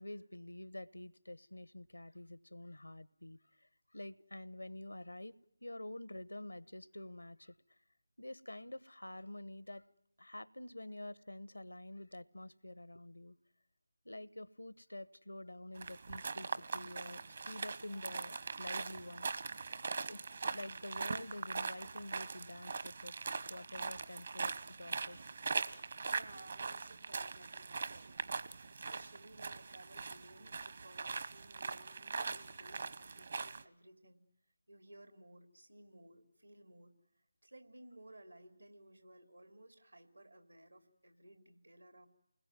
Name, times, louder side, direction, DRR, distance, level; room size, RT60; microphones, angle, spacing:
voice 1, 0.0-5.3 5.6-7.5 8.2-9.8 10.2-13.4 14.0-19.3 20.1-23.1 23.5-25.4, left 1 dB, 90° left, 17 dB, 1.1 m, -48 dB
sound 1, 15.8-33.6, right 4 dB, 55° right, 1.2 m, -41 dB
voice 2, 26.0-28.2 28.7-34.2 34.7-36.9 37.4-42.1, right 1 dB, 90° right, 7 dB, 3.5 m, -58 dB
29.0 x 20.5 x 9.3 m, 0.83 s
figure-of-eight pair, 155°, 0 cm